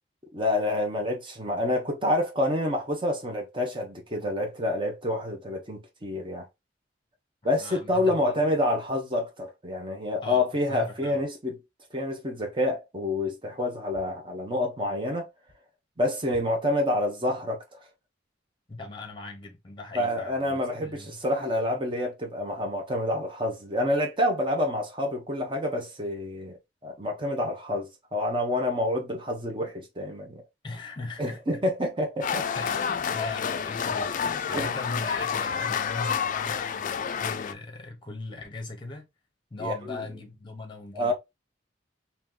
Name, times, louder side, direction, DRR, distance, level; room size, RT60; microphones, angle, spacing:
voice 1, 0.3-6.4 7.4-11.6 11.9-15.3 16.0-17.6 19.9-26.5 26.8-30.4 31.2-32.5 34.5-34.7 39.6-40.0 40.9-41.1, left 1 dB, 25° right, 1.1 m, -28 dB
voice 2, 7.6-8.4 10.2-11.2 18.7-21.2 30.6-31.4 32.5-39.1 39.5-41.1, left 2 dB, 25° left, 1.0 m, -39 dB
sound 1, 32.2-37.5, left 7 dB, 45° left, 0.3 m, -29 dB
3.0 x 2.8 x 3.7 m
head